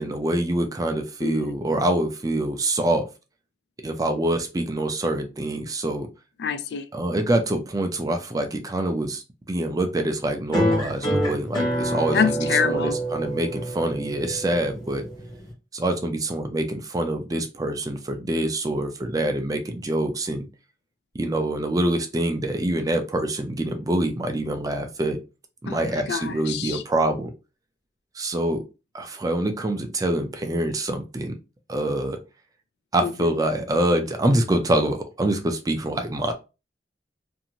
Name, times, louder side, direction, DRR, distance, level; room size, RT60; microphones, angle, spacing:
voice 1, 0.0-3.1 3.8-6.1 6.9-15.0 15.7-20.5 21.1-25.2 25.6-27.3 28.2-28.6 28.9-31.4 31.7-32.2 32.9-36.3, right 1 dB, 20° right, 0.4 m, -25 dB
voice 2, 1.2-1.5 6.4-6.9 12.1-13.0 25.7-26.8 33.0-33.3, left 6 dB, 65° left, 0.3 m, -26 dB
sound 1, 10.5-15.5, equal, 25° left, 0.9 m, -27 dB
2.6 x 2.5 x 2.8 m
head